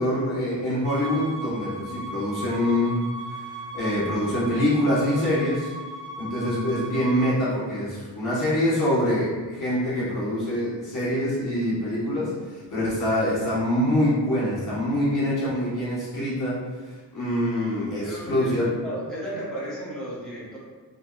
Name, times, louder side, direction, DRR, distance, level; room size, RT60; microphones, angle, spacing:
voice 1, 0.0-3.0 3.3-5.7 6.2-16.6 16.8-18.7, left 1 dB, 45° left, -8 dB, 1.3 m, -25 dB
Bowed string instrument, 0.8-7.4, right 2 dB, 60° right, 0.6 m, -37 dB
voice 2, 18.0-20.6, right 1 dB, ahead, -9 dB, 0.7 m, -34 dB
2.8 x 2.6 x 2.4 m, 1.3 s
wide cardioid pair, 180°, 43 cm